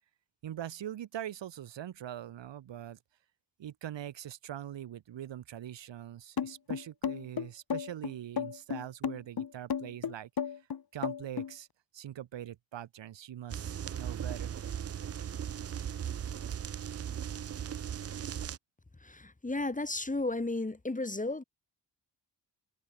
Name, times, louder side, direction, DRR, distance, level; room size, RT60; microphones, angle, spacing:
voice 1, 0.4-3.0 3.6-10.3 10.9-11.7 11.9-14.6, right 11 dB, 90° right, 0.9 m, -42 dB
sound 1, 6.4-11.5, left 7 dB, 55° left, 1.4 m, -34 dB
sound 2, 13.5-18.6, right 9 dB, 35° right, 0.4 m, -37 dB
voice 2, 19.0-21.4, left 2 dB, 20° left, 1.7 m, -33 dB
wide cardioid pair, 90°, 43 cm